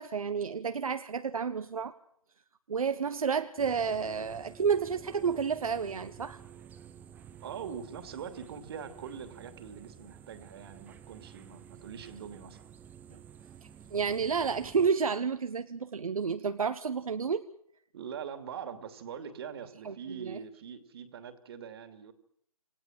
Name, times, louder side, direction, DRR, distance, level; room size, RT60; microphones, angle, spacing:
voice 1, 0.0-1.9 2.7-6.4 13.1-13.2 13.9-17.5 19.8-20.4, right 6 dB, 75° right, 10 dB, 1.2 m, -30 dB
sound 1, 3.6-14.9, right 8 dB, 10° right, 0.8 m, -51 dB
voice 2, 7.4-12.7 17.9-22.1, right 7 dB, 45° right, 8 dB, 2.8 m, -43 dB
28.0 x 17.0 x 7.6 m, 0.68 s
hypercardioid pair, 145°, 18 cm